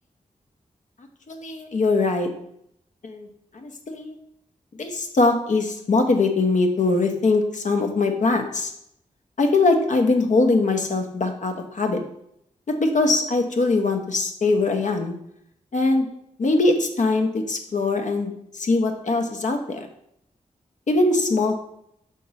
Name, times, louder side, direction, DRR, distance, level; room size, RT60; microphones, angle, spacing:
voice 1, 1.3-2.3 3.0-3.3 3.5-4.2 4.8-8.7 9.4-12.0 12.8-15.1 15.7-16.1 16.4-19.9 20.9-21.6, left 3 dB, 60° left, 4 dB, 0.9 m, -22 dB
5.2 x 3.7 x 5.5 m, 0.75 s
cardioid pair, 60°, 14 cm